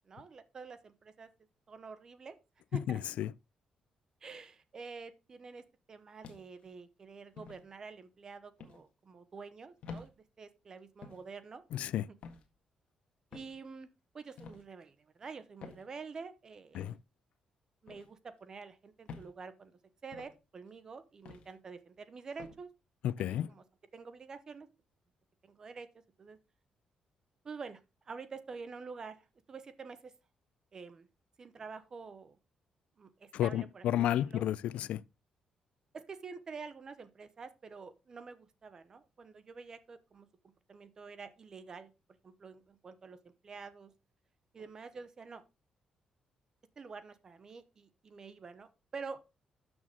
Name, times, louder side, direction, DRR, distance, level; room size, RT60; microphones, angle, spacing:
voice 1, 0.1-1.3 1.7-2.4 2.7-3.0 4.2-11.6 12.1-12.2 13.3-16.9 17.8-22.7 23.2-23.7 23.9-24.7 25.4-25.9 26.2-26.4 27.4-30.2 30.7-31.1 31.4-32.4 33.0-34.5 35.9-41.9 42.2-43.9 44.5-45.4 46.8-49.2, right 5 dB, 30° right, 0.9 m, -48 dB
voice 2, 2.9-3.3 11.7-12.0 16.8-17.0 23.0-23.5 33.3-35.0, left 12 dB, 80° left, 0.4 m, -32 dB
sound 1, 6.2-6.7 7.4-7.6 8.6-8.8 9.8-10.1 11.0-11.3 12.2-12.5 13.3-13.6 14.4-14.6 15.6-15.9 16.7-17.0 17.9-18.1 19.1-19.3 20.1-20.4 21.3-21.5 22.4-22.6, left 5 dB, 60° left, 1.6 m, -48 dB
12.5 x 6.3 x 3.7 m
cardioid pair, 170°, 2 cm